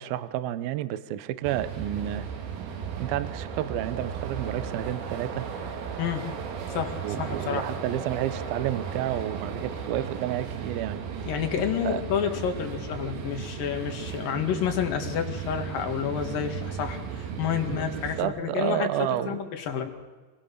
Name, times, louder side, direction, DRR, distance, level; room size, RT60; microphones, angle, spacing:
voice 1, 0.0-2.3 3.0-5.5 7.0-11.0 11.8-12.0 17.7-19.4, right 12 dB, 75° right, 14 dB, 2.4 m, -30 dB
sound 1, 1.4-18.2, right 6 dB, 90° right, 4.2 m, -35 dB
voice 2, 6.0-6.3 6.7-7.7 11.3-19.9, left 8 dB, 60° left, 4 dB, 3.2 m, -29 dB
26.5 x 20.5 x 6.7 m, 1.4 s
omnidirectional pair, 5.0 m